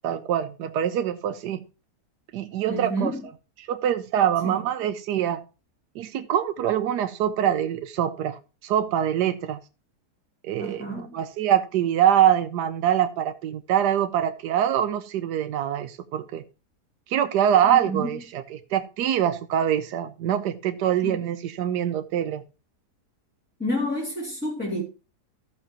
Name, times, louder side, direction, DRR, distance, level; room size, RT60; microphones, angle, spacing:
voice 1, 0.0-1.6 2.3-3.1 3.7-5.4 6.0-9.6 10.4-16.4 17.1-22.4, right 10 dB, 90° right, 1.3 m, -24 dB
voice 2, 2.7-3.2 4.4-4.6 10.6-11.1 17.6-18.2 21.0-21.1 23.6-24.8, equal, 5° left, 2.3 m, -29 dB
15.0 x 6.5 x 3.0 m
omnidirectional pair, 1.7 m